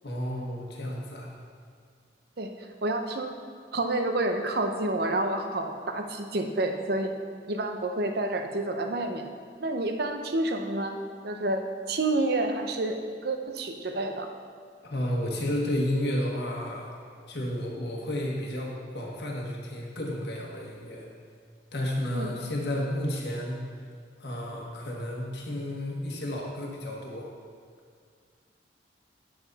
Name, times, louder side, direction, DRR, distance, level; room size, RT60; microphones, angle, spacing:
voice 1, 0.0-1.3 14.8-16.9 17.3-21.1 21.7-23.6 24.2-27.3, left 1 dB, 60° left, -2 dB, 1.4 m, -32 dB
voice 2, 2.8-3.3 3.7-7.1 7.5-9.2 9.6-11.0 11.2-11.6 11.9-14.3 22.1-22.3, right 2 dB, 60° right, 5 dB, 0.8 m, -29 dB
9.4 x 7.7 x 4.1 m, 2.1 s
head